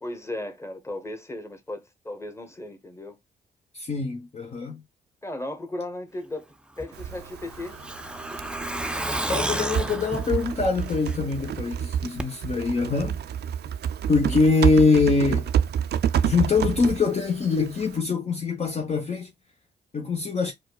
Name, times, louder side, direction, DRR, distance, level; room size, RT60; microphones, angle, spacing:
voice 1, 0.0-3.2 5.2-6.5 6.8-7.8 14.2-14.6, left 1 dB, 15° left, 1.1 m, -36 dB
voice 2, 3.7-4.8 9.3-13.2 14.1-15.4 16.2-19.3 19.9-20.5, left 4 dB, 35° left, 0.7 m, -23 dB
Truck, 6.8-11.5 11.8-11.9 12.2-12.3, right 1 dB, 5° right, 0.4 m, -31 dB
Typing, 6.9-18.0, right 8 dB, 65° right, 0.4 m, -29 dB
4.6 x 2.2 x 2.2 m
cardioid pair, 65°, 18 cm